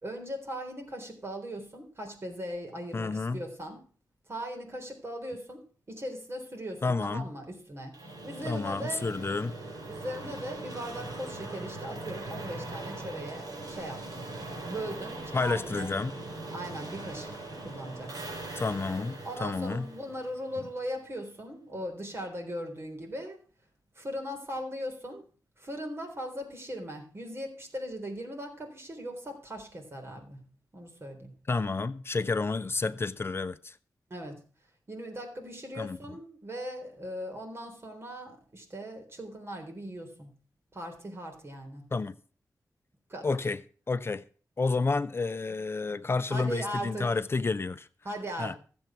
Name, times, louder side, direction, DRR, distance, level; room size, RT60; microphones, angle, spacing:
voice 1, 0.0-3.8 4.3-7.9 8.2-9.1 9.9-14.3 14.7-15.9 16.5-18.2 19.2-23.4 24.0-25.2 25.6-30.4 30.7-31.3 34.1-34.4 34.9-40.3 40.7-41.8 43.1-43.4 46.3-47.2 48.0-48.6, equal, 40° right, 3.8 m, -39 dB
voice 2, 2.9-3.4 6.8-7.3 8.4-9.5 15.3-16.1 18.5-19.9 31.5-33.8 35.8-36.0 41.9-42.2 43.2-43.6 43.9-44.2 44.6-47.9 48.4-48.6, left 3 dB, 40° left, 0.6 m, -30 dB
sound 1, 7.9-20.8, right 2 dB, 70° right, 5.2 m, -41 dB
15.0 x 7.9 x 5.9 m
wide cardioid pair, 110°, 7 cm